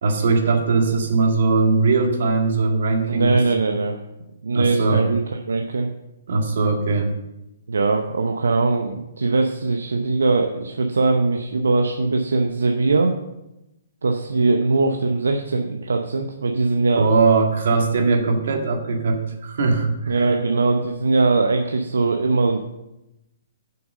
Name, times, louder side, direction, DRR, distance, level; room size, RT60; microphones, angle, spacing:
voice 1, 0.0-3.4 4.5-5.0 6.3-7.1 16.9-20.3, right 4 dB, 65° right, 3 dB, 1.7 m, -20 dB
voice 2, 3.1-4.0 4.4-5.9 7.7-13.1 14.0-17.1 18.2-18.3 20.1-22.6, right 3 dB, 85° right, 4 dB, 0.7 m, -21 dB
7.5 x 5.7 x 6.4 m, 0.92 s
hypercardioid pair, 135°, 0 cm